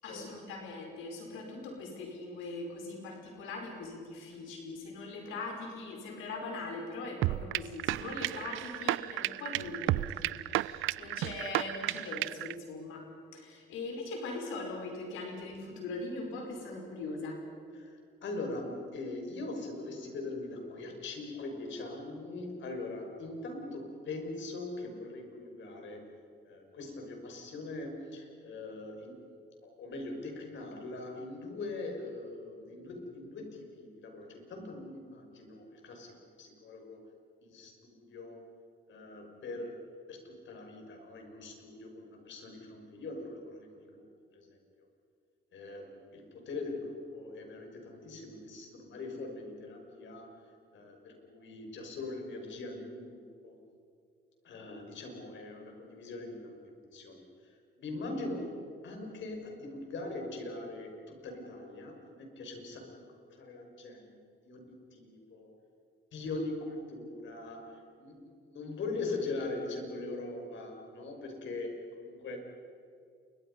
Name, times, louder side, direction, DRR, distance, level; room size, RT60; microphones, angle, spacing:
voice 1, 0.0-17.4, left 3 dB, 90° left, 2 dB, 5.3 m, -41 dB
sound 1, 7.2-12.5, right 16 dB, 85° right, 0.5 m, -33 dB
voice 2, 17.7-26.2 26.4-29.2 29.6-37.0 37.4-38.4 38.9-39.8 40.1-44.1 44.3-44.6 45.5-50.4 50.7-53.6 54.4-64.2 64.4-65.5 66.1-72.4, left 2 dB, 70° left, 3 dB, 5.9 m, -41 dB
29.0 x 24.5 x 5.5 m, 2.4 s
cardioid pair, 90°, 20 cm